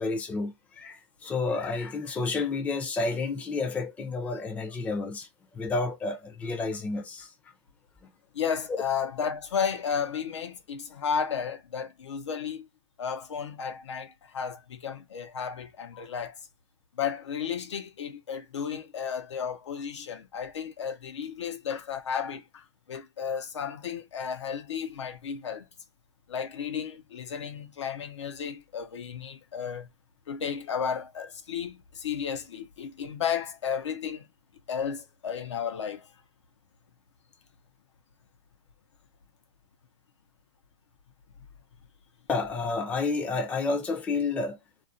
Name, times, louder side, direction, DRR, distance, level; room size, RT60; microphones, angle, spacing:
voice 1, 0.0-5.3 5.5-7.3 42.3-44.6, left 3 dB, 10° left, 0.4 m, -30 dB
voice 2, 8.3-12.7 13.0-16.4 17.0-25.7 26.3-29.9 30.3-34.3 34.7-36.1, left 7 dB, 85° left, 0.6 m, -33 dB
2.4 x 2.0 x 2.6 m
hypercardioid pair, 140°, 15 cm